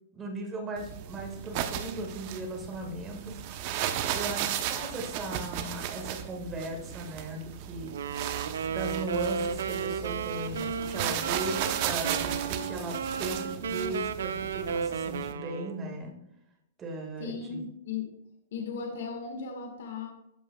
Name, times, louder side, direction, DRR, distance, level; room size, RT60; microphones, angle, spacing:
voice 1, 0.1-3.4 4.1-7.9 8.7-16.2 16.8-17.6, right 2 dB, 15° right, 1 dB, 1.8 m, -37 dB
sound 1, 0.8-15.3, right 10 dB, 40° right, 0.8 m, -35 dB
Wind instrument woodwind instrument, 7.9-15.9, right 6 dB, 85° right, 0.7 m, -33 dB
voice 2, 17.2-18.1 18.5-20.1, left 5 dB, 65° left, 2 dB, 1.6 m, -36 dB
13.0 x 5.5 x 2.3 m, 0.83 s
hypercardioid pair, 155°, 0 cm